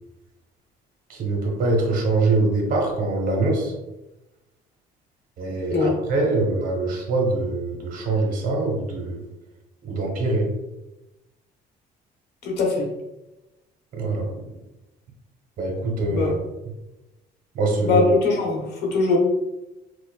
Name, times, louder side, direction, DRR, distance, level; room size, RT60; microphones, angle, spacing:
voice 1, 1.1-3.7 5.4-9.2 9.8-10.5 13.9-14.4 15.6-16.3 17.5-18.0, right 2 dB, 55° right, 1 dB, 0.9 m, -23 dB
voice 2, 12.4-12.9 16.1-16.3 17.8-19.2, left 3 dB, 80° left, -1 dB, 1.0 m, -21 dB
4.7 x 2.1 x 2.2 m, 1.0 s
cardioid pair, 110°, 17 cm